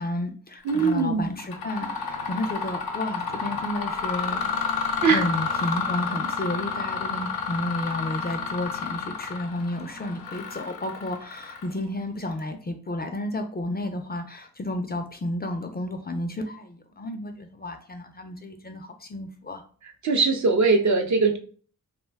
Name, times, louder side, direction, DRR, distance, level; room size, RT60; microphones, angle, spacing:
voice 1, 0.0-4.4 5.0-19.6, left 1 dB, 30° left, 6 dB, 0.4 m, -32 dB
voice 2, 0.6-1.3 5.0-5.2 20.0-21.4, right 4 dB, 55° right, 5 dB, 0.6 m, -21 dB
Mechanisms, 0.7-1.0 1.4-11.9, left 5 dB, 90° left, 0.6 m, -30 dB
2.4 x 2.2 x 3.4 m, 0.42 s
cardioid pair, 75°, 35 cm